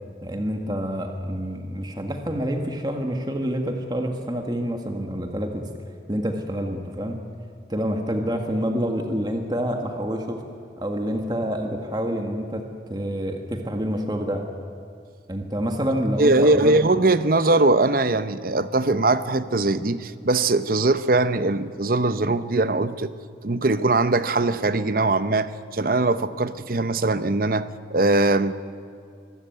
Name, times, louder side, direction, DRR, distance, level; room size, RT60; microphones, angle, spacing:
voice 1, 0.2-5.6 6.1-7.2 7.7-10.4 10.8-12.6 12.9-14.5 15.3-16.8, equal, 25° right, 4 dB, 1.7 m, -27 dB
voice 2, 16.2-23.1 23.4-28.5, right 2 dB, 50° right, 13 dB, 0.8 m, -21 dB
24.0 x 15.5 x 9.3 m, 2.4 s
head